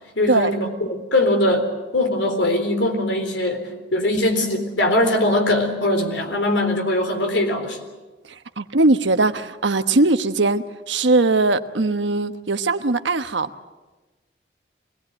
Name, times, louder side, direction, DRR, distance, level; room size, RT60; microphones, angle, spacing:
voice 1, 0.2-1.7 1.9-7.8, left 1 dB, 85° left, 4 dB, 4.0 m, -21 dB
voice 2, 8.3-13.5, right 3 dB, 85° right, 9 dB, 1.2 m, -20 dB
24.5 x 19.0 x 9.0 m, 1.2 s
head